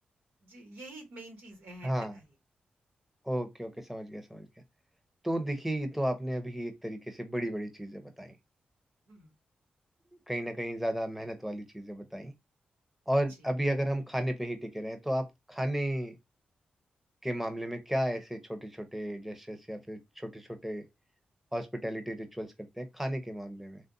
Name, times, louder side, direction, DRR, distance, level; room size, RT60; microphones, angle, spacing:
voice 1, 0.4-2.2 9.1-9.3, right 2 dB, 85° right, 1.4 m, -48 dB
voice 2, 1.8-2.2 3.3-4.5 5.2-8.3 10.3-12.3 13.1-16.1 17.2-20.8 21.5-23.8, equal, 5° right, 0.8 m, -34 dB
3.3 x 2.5 x 2.6 m
supercardioid pair, 45°, 3 cm